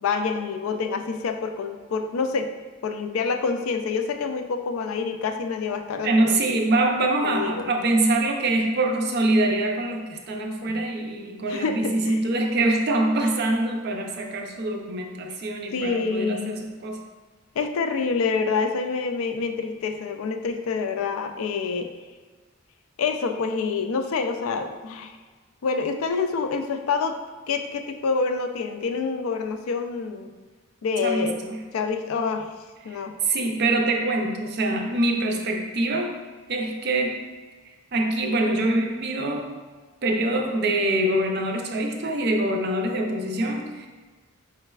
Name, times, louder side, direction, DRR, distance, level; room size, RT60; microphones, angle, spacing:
voice 1, 0.0-2.5 2.8-6.4 7.2-7.7 10.7-10.8 11.5-12.2 15.7-16.6 17.6-21.9 23.0-25.2 25.6-27.2 27.5-30.3 30.8-31.4 31.7-32.4 32.8-33.1, left 5 dB, 85° left, 6 dB, 0.4 m, -27 dB
voice 2, 6.0-17.0 31.0-31.6 32.8-36.1 36.5-37.2 37.9-39.5 40.0-43.9, right 2 dB, 50° right, 3 dB, 0.5 m, -24 dB
4.7 x 3.2 x 2.3 m, 1.4 s
head